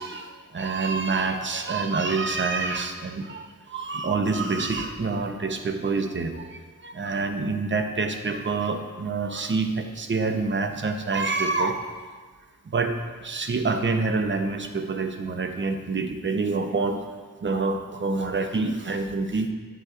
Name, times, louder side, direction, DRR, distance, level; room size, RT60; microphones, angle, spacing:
voice 1, 0.0-11.8 12.7-12.9 13.2-17.0 17.4-19.5, right 3 dB, 35° right, 6 dB, 0.6 m, -27 dB
9.2 x 6.4 x 2.4 m, 1.4 s
wide cardioid pair, 95°, 36 cm